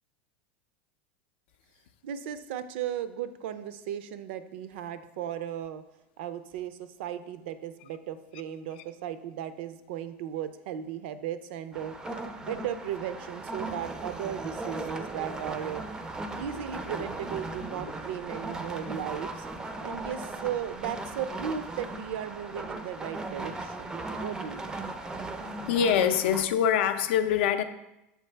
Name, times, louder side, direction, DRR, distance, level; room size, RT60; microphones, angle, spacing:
voice 1, 2.0-5.8 6.2-12.0 12.4-15.8 16.3-19.5 19.8-23.9 24.2-24.8, right 9 dB, 75° right, 12 dB, 0.4 m, -36 dB
sound 1, 11.7-26.5, right 2 dB, 10° right, 0.4 m, -37 dB
voice 2, 25.7-27.6, left 9 dB, 75° left, 10 dB, 0.5 m, -24 dB
6.6 x 4.5 x 3.3 m, 0.92 s
supercardioid pair, 145°, 6 cm